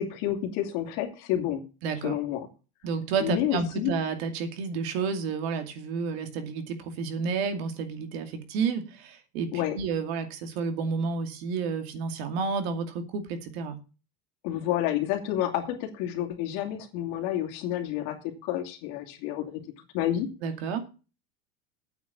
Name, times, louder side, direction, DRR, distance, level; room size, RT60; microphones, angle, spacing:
voice 1, 0.0-1.6 2.0-2.5 3.2-3.9 9.5-9.8 14.4-18.2 18.4-19.6 19.9-20.3, left 11 dB, 50° left, 3 dB, 2.8 m, -29 dB
voice 2, 1.8-2.2 2.8-9.5 9.8-13.8 20.4-20.8, right 5 dB, 65° right, 8 dB, 2.5 m, -30 dB
8.9 x 7.2 x 7.2 m, 0.32 s
cardioid pair, 175°, 33 cm